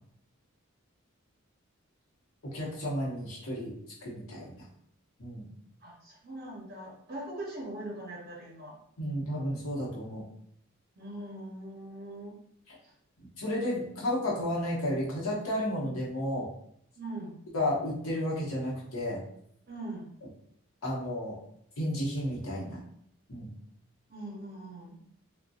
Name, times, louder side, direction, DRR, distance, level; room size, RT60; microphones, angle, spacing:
voice 1, 2.5-4.7 5.2-5.5 9.0-10.2 13.2-16.5 17.5-19.2 20.8-21.4 21.8-22.8 23.3-23.5, left 1 dB, 85° left, -4 dB, 0.8 m, -32 dB
voice 2, 5.8-8.8 11.0-12.4 12.8-12.9 17.0-17.4 19.7-20.1 24.1-25.0, right 1 dB, 45° right, -2 dB, 0.6 m, -41 dB
2.6 x 2.1 x 2.3 m, 0.69 s
head